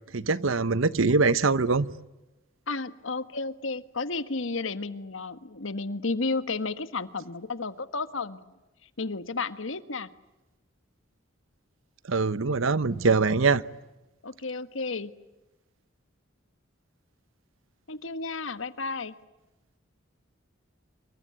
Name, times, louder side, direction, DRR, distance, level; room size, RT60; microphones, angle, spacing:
voice 1, 0.1-1.9 12.1-13.6, right 4 dB, 85° right, 0.9 m, -23 dB
voice 2, 2.7-8.5 9.0-10.1 14.2-15.1 17.9-19.1, left 3 dB, 75° left, 1.5 m, -32 dB
26.5 x 23.5 x 9.4 m
head